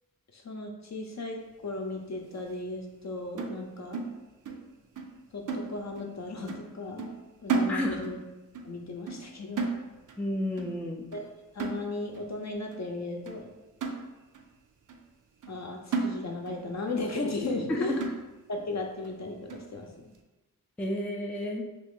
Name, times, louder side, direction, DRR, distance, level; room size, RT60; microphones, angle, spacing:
voice 1, 0.3-4.1 5.3-7.2 7.4-8.2 8.6-9.7 11.1-11.2 11.5-13.5 15.5-18.0 18.5-20.1, left 2 dB, 50° left, 2 dB, 0.6 m, -36 dB
sound 1, 3.4-4.7 5.0-5.2 5.5-6.2 6.5-6.7 7.0-8.2 8.5-8.8 9.1-9.3 9.6-10.2 10.6-10.8 11.1-11.3 11.6-12.2 12.7-12.8 13.3-13.4 13.8-14.5 14.9-15.0 15.4-15.6 15.9-16.6 17.0-17.1 17.5-17.6 18.0-18.5 19.0-19.1 19.5-19.7, right 4 dB, 60° right, 0.5 m, -34 dB
voice 2, 7.7-8.1 10.2-11.0 17.7-18.0 20.8-21.6, left 1 dB, 5° left, 1 dB, 0.3 m, -31 dB
3.0 x 2.4 x 3.6 m, 1.1 s
wide cardioid pair, 60°, 36 cm